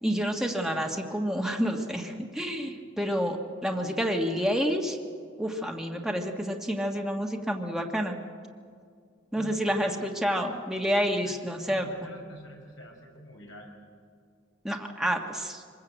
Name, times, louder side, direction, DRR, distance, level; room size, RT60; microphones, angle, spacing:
voice 1, 0.0-5.0 5.4-8.2 9.3-11.9 14.6-15.6, equal, 5° right, 1 dB, 1.6 m, -29 dB
voice 2, 9.3-10.1 11.2-13.7, left 1 dB, 70° left, 1 dB, 5.6 m, -47 dB
25.5 x 21.0 x 8.1 m, 2.2 s
head